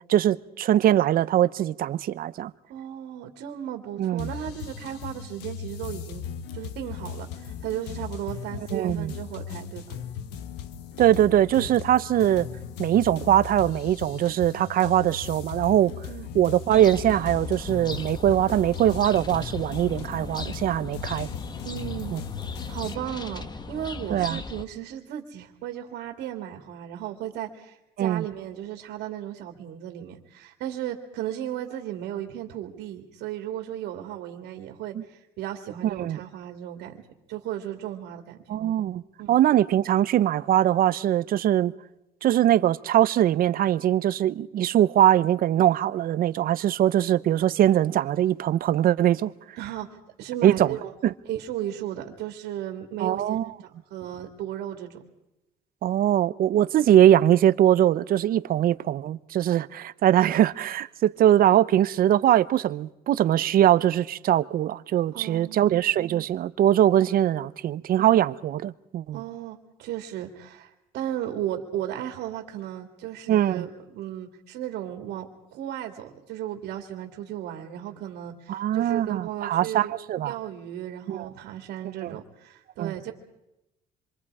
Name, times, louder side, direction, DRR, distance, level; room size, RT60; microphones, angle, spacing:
voice 1, 0.1-2.5 4.0-4.3 8.7-9.1 11.0-12.5 12.8-15.9 16.3-21.3 22.1-22.2 24.1-24.4 28.0-28.2 34.9-35.0 35.8-36.2 38.5-39.0 39.3-41.7 42.2-49.3 50.4-50.7 51.0-51.1 53.0-53.5 55.8-69.2 73.3-73.6 78.5-80.3 81.1-81.3 82.0-82.1 82.8-82.9, right 11 dB, 60° right, 0.8 m, -22 dB
voice 2, 2.7-6.2 6.5-9.8 16.1-16.3 21.6-22.1 22.7-37.0 37.3-38.4 39.2-39.4 49.6-50.9 51.2-55.0 65.1-65.7 69.1-79.9 80.3-83.1, right 11 dB, 80° right, 2.5 m, -35 dB
sound 1, 4.2-22.9, left 8 dB, 90° left, 1.2 m, -37 dB
sound 2, 16.7-24.6, left 3 dB, 25° left, 1.2 m, -38 dB
26.5 x 24.0 x 4.9 m
cardioid pair, 110°, 17 cm